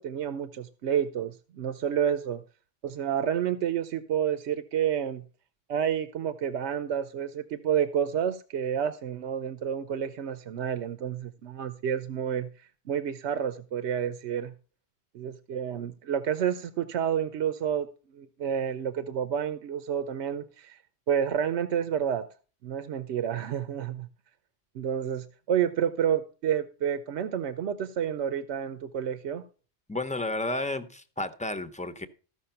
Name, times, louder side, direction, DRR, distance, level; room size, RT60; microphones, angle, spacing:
voice 1, 0.0-2.4 2.8-5.2 5.7-14.5 15.1-17.9 18.1-20.8 21.1-22.2 22.6-24.1 24.7-29.4, right 8 dB, 85° right, 1.0 m, -29 dB
voice 2, 29.9-32.1, left 2 dB, 5° left, 0.7 m, -32 dB
14.0 x 5.9 x 5.8 m
omnidirectional pair, 1.1 m